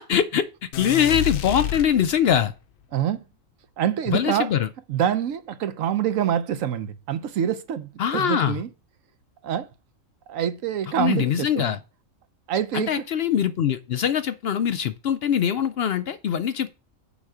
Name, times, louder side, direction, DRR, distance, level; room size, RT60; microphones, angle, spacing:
voice 1, 0.0-2.5 4.1-4.7 8.0-8.6 11.0-11.8 12.7-16.7, left 9 dB, 65° left, 0.6 m, -23 dB
sound 1, 0.7-2.5, left 9 dB, 80° left, 1.1 m, -29 dB
voice 2, 2.9-3.2 3.8-4.5 4.9-8.7 9.4-9.7 10.3-11.8 12.5-13.0, right 9 dB, 80° right, 1.1 m, -26 dB
7.2 x 5.7 x 4.9 m
omnidirectional pair, 1.4 m